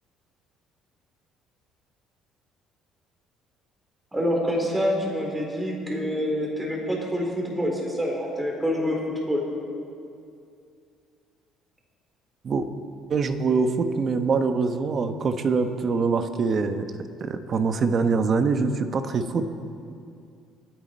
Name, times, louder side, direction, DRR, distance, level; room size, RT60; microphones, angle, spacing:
voice 1, 4.1-9.0 9.3-9.4, equal, 10° right, -1 dB, 3.7 m, -26 dB
voice 2, 13.1-16.8 17.2-19.5, right 4 dB, 40° right, 8 dB, 1.0 m, -24 dB
26.5 x 9.3 x 4.4 m, 2.4 s
cardioid pair, 115°, 0 cm